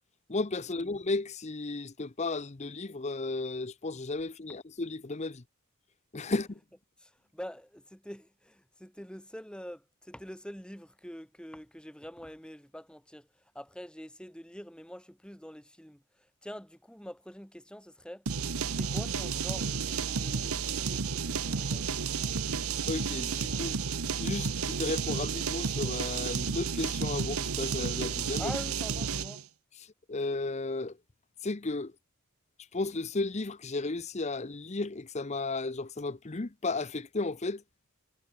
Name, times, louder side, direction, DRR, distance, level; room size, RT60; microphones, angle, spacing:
voice 1, 0.3-5.4 6.1-6.6 22.9-23.8 24.2-28.5 30.1-31.0 31.4-31.9 32.7-37.6, left 3 dB, 30° left, 0.7 m, -34 dB
voice 2, 7.0-13.3 13.5-18.2 18.7-22.0 28.4-29.5, equal, 5° left, 4.1 m, -45 dB
sound 1, 18.3-29.4, right 5 dB, 85° right, 1.1 m, -32 dB
head